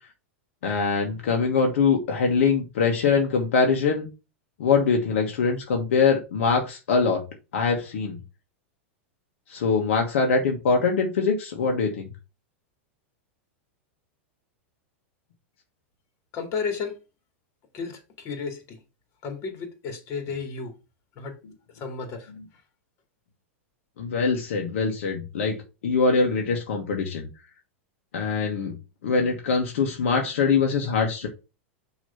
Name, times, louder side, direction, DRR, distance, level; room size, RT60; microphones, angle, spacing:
voice 1, 0.6-4.1 4.6-7.2 7.5-8.2 9.5-12.1 24.0-25.6 25.8-27.3 28.1-28.7 29.0-31.3, left 5 dB, 75° left, 1.4 m, -23 dB
voice 2, 16.3-17.0 17.7-18.8 19.2-20.7 21.2-21.4 21.7-22.3, left 5 dB, 40° left, 2.4 m, -33 dB
6.2 x 3.2 x 5.6 m
hypercardioid pair, 115°, 7 cm